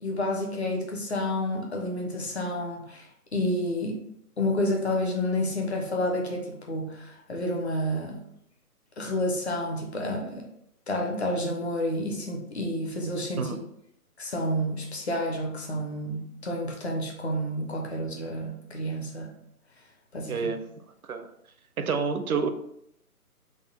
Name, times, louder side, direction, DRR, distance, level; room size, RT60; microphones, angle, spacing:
voice 1, 0.0-4.0 4.4-8.2 9.0-10.4 10.9-13.6 14.2-19.3 20.1-20.4, left 1 dB, 45° left, 0 dB, 0.7 m, -30 dB
voice 2, 20.3-20.6 21.0-21.3 21.8-22.5, right 5 dB, 65° right, 8 dB, 0.5 m, -28 dB
3.6 x 2.2 x 4.1 m, 0.74 s
figure-of-eight pair, 155°, 46 cm